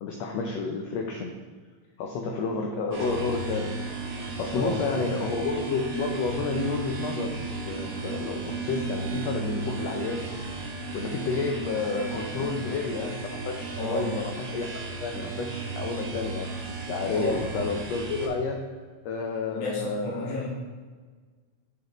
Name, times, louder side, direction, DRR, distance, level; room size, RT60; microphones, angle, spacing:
voice 1, 0.0-1.4 2.0-3.8 4.4-10.2 10.9-16.5 16.9-18.6 19.0-20.5, left 4 dB, 85° left, 2 dB, 1.5 m, -30 dB
sound 1, 2.9-18.3, right 3 dB, 55° right, 2.1 m, -34 dB
voice 2, 4.5-4.8 12.3-12.8 13.8-14.2 17.1-17.5 19.5-20.5, left 2 dB, 70° left, -5 dB, 3.0 m, -32 dB
6.5 x 6.3 x 3.0 m, 1.5 s
omnidirectional pair, 3.7 m